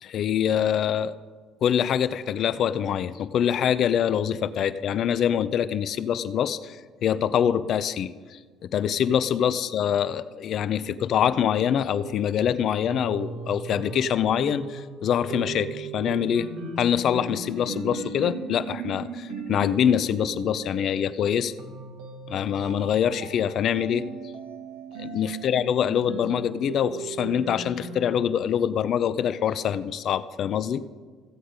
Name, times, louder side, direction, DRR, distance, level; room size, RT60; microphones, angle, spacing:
voice 1, 0.0-1.1 1.6-16.5 16.8-21.5 22.3-24.0 25.0-30.8, left 9 dB, 60° left, 14 dB, 0.5 m, -25 dB
sound 1, 11.9-28.0, right 4 dB, 90° right, 1.6 m, -38 dB
15.0 x 7.8 x 5.1 m, 1.5 s
supercardioid pair, 75°, 0 cm